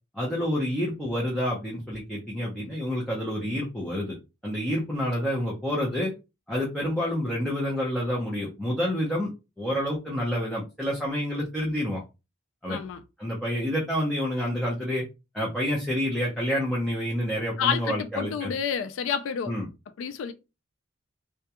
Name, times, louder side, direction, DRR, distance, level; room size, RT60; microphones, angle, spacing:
voice 1, 0.1-4.2 4.4-6.1 6.5-9.3 9.6-12.0 12.6-12.8 13.2-15.0 15.3-18.5 19.5-19.7, equal, ahead, 0.6 m, -28 dB
voice 2, 12.7-13.0 17.6-19.5 20.0-20.3, left 7 dB, 90° left, 0.3 m, -29 dB
2.3 x 2.2 x 2.8 m
head